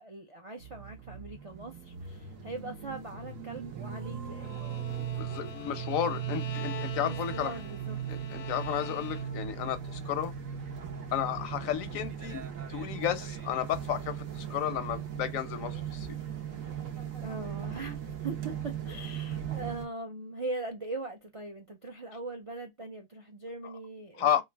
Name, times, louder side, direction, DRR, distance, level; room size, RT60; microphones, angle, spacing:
voice 1, 0.0-4.9 6.1-6.2 7.0-8.0 17.2-24.4, right 2 dB, 60° right, 0.3 m, -41 dB
sound 1, 0.6-19.9, right 9 dB, 80° right, 1.3 m, -38 dB
Bowed string instrument, 4.4-9.6, left 11 dB, 65° left, 0.7 m, -45 dB
voice 2, 5.2-7.6 8.1-10.3 11.1-12.4 12.7-16.2 24.2-24.4, left 10 dB, 85° left, 1.1 m, -32 dB
3.2 x 2.4 x 3.2 m
omnidirectional pair, 1.4 m